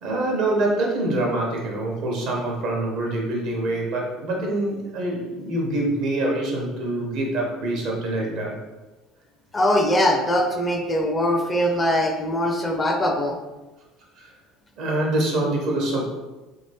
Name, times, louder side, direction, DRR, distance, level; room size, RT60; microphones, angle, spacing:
voice 1, 0.0-8.6 14.2-14.3 14.8-16.1, right 1 dB, 65° right, -1 dB, 0.9 m, -25 dB
voice 2, 9.5-13.4, left 1 dB, 20° left, 3 dB, 0.5 m, -22 dB
2.9 x 2.8 x 2.8 m, 1.1 s
hypercardioid pair, 70°, 0 cm